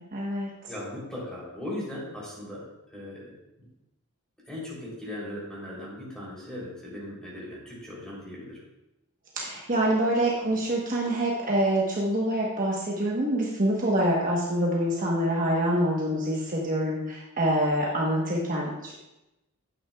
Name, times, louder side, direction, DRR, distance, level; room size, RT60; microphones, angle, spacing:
voice 1, 0.0-0.5 9.3-19.0, right 1 dB, 40° right, -3 dB, 1.2 m, -26 dB
voice 2, 0.7-2.6 2.9-3.7 4.5-8.6, left 1 dB, 5° left, -6 dB, 3.4 m, -38 dB
10.5 x 8.8 x 2.3 m, 0.94 s
head